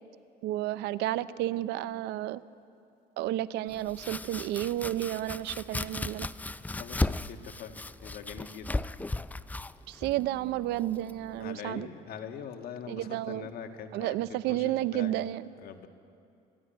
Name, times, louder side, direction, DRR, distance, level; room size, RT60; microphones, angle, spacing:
voice 1, 0.4-2.4 3.2-6.3 9.9-11.9 12.9-13.5 13.9-15.4, right 14 dB, 85° right, 17 dB, 0.6 m, -31 dB
Domestic sounds home sounds, 3.7-11.4, left 2 dB, 10° left, 0.4 m, -36 dB
voice 2, 6.7-8.7 11.4-14.2 14.5-15.1 15.6-15.9, left 7 dB, 65° left, 6 dB, 1.5 m, -43 dB
23.0 x 12.0 x 10.0 m, 2.6 s
cardioid pair, 110°, 17 cm